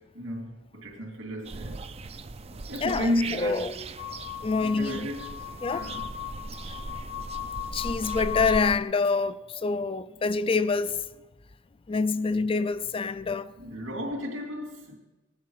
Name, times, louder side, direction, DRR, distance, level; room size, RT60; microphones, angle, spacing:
voice 1, 0.0-1.9 2.7-3.8 4.6-6.1 13.6-14.9, left 1 dB, 85° right, 2.9 m, -33 dB
sound 1, 1.4-8.8, right 3 dB, 35° right, 0.5 m, -39 dB
voice 2, 2.5-3.1 3.4-3.7 4.4-5.1 5.6-5.9 7.7-11.0 11.9-13.5, left 4 dB, 30° left, 0.4 m, -26 dB
sound 2, 4.0-8.8, left 11 dB, 80° left, 1.1 m, -37 dB
18.5 x 10.5 x 4.8 m
head